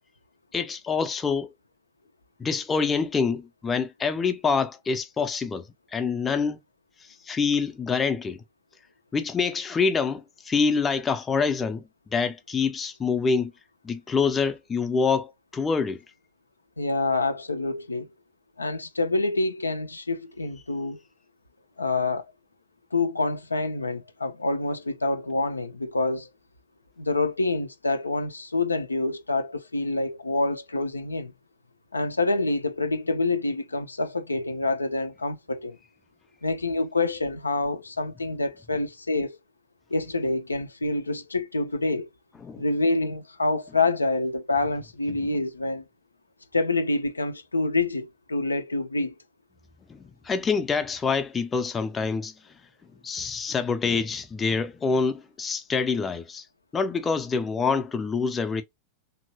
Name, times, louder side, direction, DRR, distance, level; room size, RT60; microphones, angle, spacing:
voice 1, 0.5-1.5 2.4-6.6 7.2-8.4 9.1-11.8 12.1-13.5 13.8-16.0 42.4-42.6 49.9-52.3 53.0-56.4 56.7-58.6, left 5 dB, 20° left, 0.5 m, -26 dB
voice 2, 16.8-18.1 18.6-21.0 21.8-22.2 22.9-26.3 27.0-31.3 31.9-35.8 36.4-39.4 39.9-42.1 42.6-45.8 46.5-49.1, left 2 dB, 80° left, 0.4 m, -27 dB
2.9 x 2.7 x 2.7 m
figure-of-eight pair, 90°, 0 cm